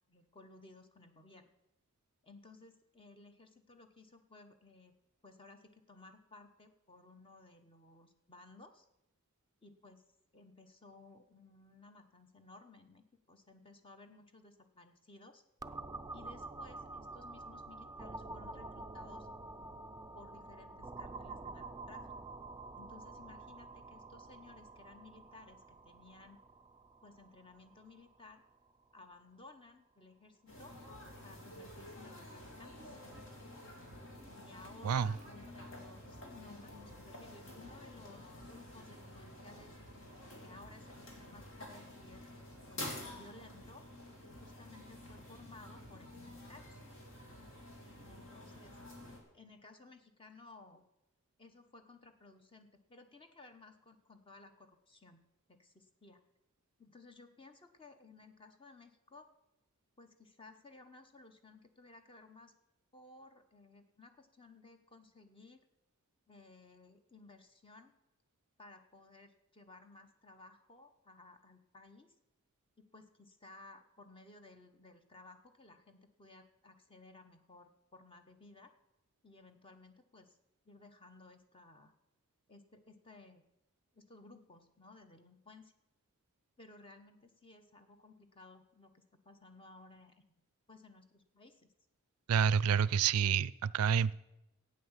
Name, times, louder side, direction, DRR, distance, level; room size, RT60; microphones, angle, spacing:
voice 1, 0.1-1.5 2.2-4.9 5.2-8.9 9.6-10.0 10.3-15.4 16.1-19.3 20.1-22.3 22.7-26.4 27.0-28.4 28.9-30.8 31.2-33.0 34.3-39.8 40.4-42.3 42.7-43.9 44.4-46.8 48.1-48.8 49.3-50.8 51.4-55.2 55.5-56.2 56.8-59.3 60.0-62.5 62.9-65.6 66.3-67.9 68.6-72.1 72.8-78.7 79.2-80.4 80.6-81.9 82.5-83.4 83.9-85.7 86.6-90.1 90.7-91.7, left 3 dB, 25° left, 7 dB, 1.0 m, -58 dB
sound 1, 15.6-29.2, right 2 dB, 15° right, 0.4 m, -48 dB
sound 2, 30.5-49.2, left 1 dB, 60° left, 3.0 m, -50 dB
voice 2, 92.3-94.1, right 7 dB, 85° right, 21 dB, 0.4 m, -28 dB
13.0 x 8.9 x 7.3 m, 0.92 s
head